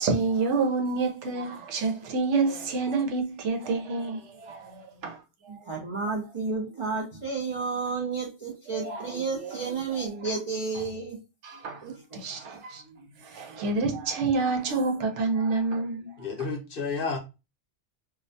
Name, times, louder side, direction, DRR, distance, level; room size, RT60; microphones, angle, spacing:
voice 1, 0.0-5.6 8.7-10.3 11.4-16.2, right 4 dB, 80° right, 1.0 m, -29 dB
voice 2, 5.5-11.2 11.8-11.9, right 4 dB, 45° right, 0.4 m, -31 dB
voice 3, 16.2-17.2, left 4 dB, 55° left, 0.8 m, -31 dB
2.4 x 2.1 x 2.6 m
omnidirectional pair, 1.2 m